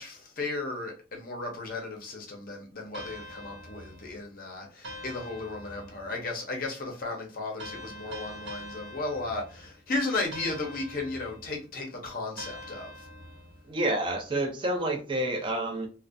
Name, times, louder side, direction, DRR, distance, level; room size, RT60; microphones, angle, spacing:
voice 1, 0.0-13.1, left 2 dB, 50° left, 0.6 m, -35 dB
sound 1, 2.9-4.3 4.8-6.2 7.6-9.8 10.3-11.6 12.4-13.7, equal, 70° right, 0.7 m, -44 dB
voice 2, 13.7-15.9, right 1 dB, 25° right, 0.4 m, -29 dB
2.4 x 2.1 x 2.5 m
head